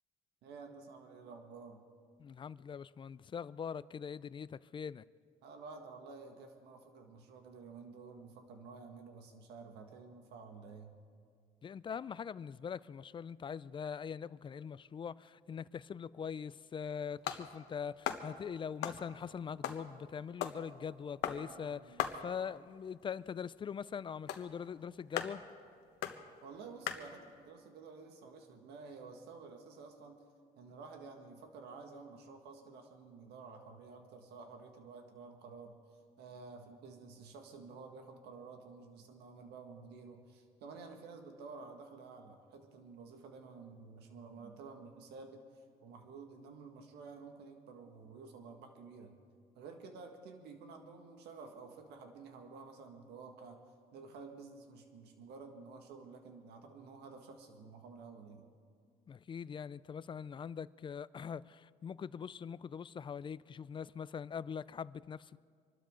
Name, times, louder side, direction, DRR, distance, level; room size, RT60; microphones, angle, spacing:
voice 1, 0.4-1.8 5.4-10.9 21.4-22.0 26.4-30.2 30.6-35.8 36.2-45.4 45.8-49.2 49.6-53.6 53.9-58.5, right 4 dB, 80° right, 1.8 m, -51 dB
voice 2, 2.2-5.0 11.6-25.4 59.1-65.4, left 7 dB, 30° left, 0.4 m, -42 dB
sound 1, 16.8-27.5, left 10 dB, 80° left, 1.1 m, -42 dB
26.0 x 12.5 x 3.8 m
cardioid pair, 110°, 17 cm